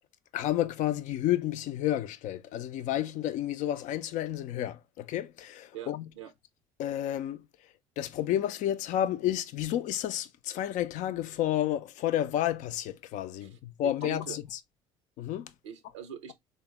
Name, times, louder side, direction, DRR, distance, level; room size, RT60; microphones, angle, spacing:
voice 1, 0.3-6.1 6.8-7.4 8.0-14.6 15.2-15.5, left 12 dB, 60° left, 0.4 m, -31 dB
voice 2, 5.7-6.3 13.4-14.4 15.6-16.3, right 7 dB, 85° right, 0.6 m, -43 dB
3.4 x 2.1 x 3.3 m
hypercardioid pair, 65°, 15 cm